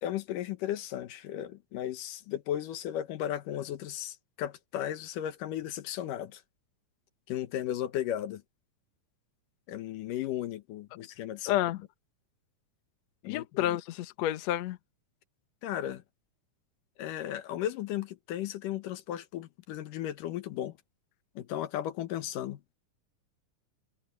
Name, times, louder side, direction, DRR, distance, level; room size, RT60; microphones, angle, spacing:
voice 1, 0.0-6.4 7.3-8.4 9.7-11.6 13.2-13.7 15.6-16.0 17.0-20.8 21.4-22.6, left 11 dB, 85° left, 2.8 m, -35 dB
voice 2, 11.5-11.8 13.2-14.8, left 13 dB, 65° left, 2.0 m, -30 dB
omnidirectional pair, 3.7 m